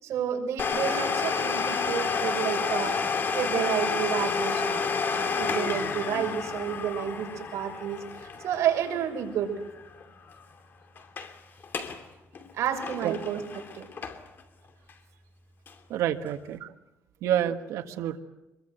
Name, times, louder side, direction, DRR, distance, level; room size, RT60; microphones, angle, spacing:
voice 1, 0.0-3.0 3.3-9.5 12.5-13.9, right 9 dB, 65° right, 3 dB, 6.1 m, -30 dB
Domestic sounds home sounds, 0.6-10.0 10.3-10.4 11.0-11.3 11.6-12.0 12.3-14.4 14.9-15.0 15.7-15.8, left 5 dB, 40° left, 2.7 m, -30 dB
voice 2, 15.9-16.7 17.2-18.2, right 11 dB, 85° right, 5 dB, 1.6 m, -28 dB
26.5 x 22.5 x 8.1 m, 0.96 s
cardioid pair, 145°, 5 cm